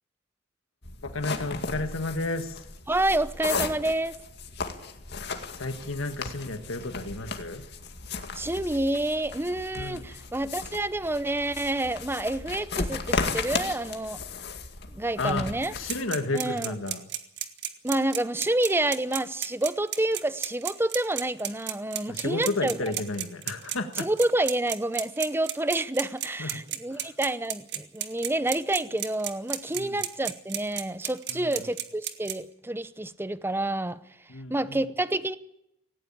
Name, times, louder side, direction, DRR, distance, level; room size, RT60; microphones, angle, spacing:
sound 1, 0.8-16.0, left 4 dB, 55° left, 2.1 m, -35 dB
voice 1, 1.0-2.7 5.5-7.6 9.7-10.0 15.2-15.5 15.7-17.0 22.1-24.1 26.4-26.6 26.9-27.1 29.7-30.0 31.3-31.6 34.3-34.8, left 2 dB, 85° left, 1.6 m, -32 dB
voice 2, 2.9-4.2 8.3-14.2 14.9-15.7 16.3-16.7 17.8-22.7 24.0-34.0 34.5-35.4, right 1 dB, 10° right, 0.8 m, -28 dB
sound 2, 15.6-32.3, right 12 dB, 60° right, 1.7 m, -32 dB
17.5 x 17.5 x 8.7 m
head